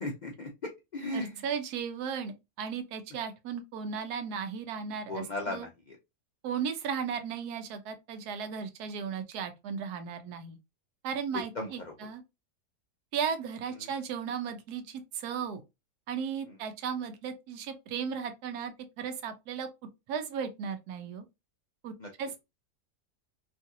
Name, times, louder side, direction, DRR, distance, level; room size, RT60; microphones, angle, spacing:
voice 1, 0.0-1.4 5.1-6.0 11.3-11.9 13.8-13.9 16.5-16.6 22.0-22.1, left 2 dB, 80° left, 0.4 m, -37 dB
voice 2, 1.1-5.7 6.4-10.6 11.0-12.2 13.1-15.6 16.1-19.7 20.1-21.2 21.8-21.9 22.2-22.4, right 7 dB, 80° right, 1.2 m, -35 dB
3.0 x 2.5 x 2.7 m
omnidirectional pair, 1.7 m